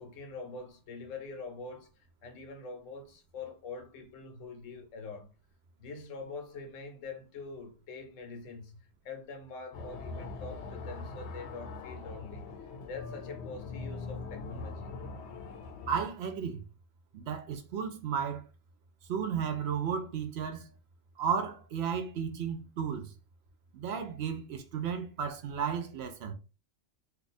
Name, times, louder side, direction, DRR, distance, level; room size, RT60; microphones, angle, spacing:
voice 1, 0.0-5.3 5.8-12.6 12.9-14.9, left 4 dB, 85° left, 1.1 m, -44 dB
sound 1, 9.7-16.0, left 3 dB, 65° left, 0.9 m, -42 dB
voice 2, 15.9-16.6 17.1-18.5 19.1-20.7 21.2-23.1 23.7-26.3, right 7 dB, 65° right, 0.8 m, -34 dB
2.6 x 2.4 x 4.1 m
omnidirectional pair, 1.3 m